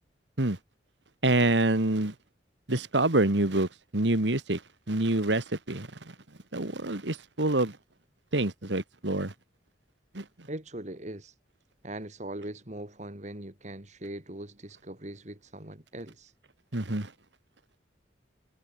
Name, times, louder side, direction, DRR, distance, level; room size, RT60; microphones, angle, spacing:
voice 1, 1.2-2.1 2.7-4.6 4.9-5.9 6.5-7.8 8.3-9.3 10.1-10.2 16.7-17.1, right 2 dB, 90° right, 2.1 m, -26 dB
voice 2, 10.5-11.3 11.8-16.3, right 1 dB, 40° right, 3.4 m, -40 dB
head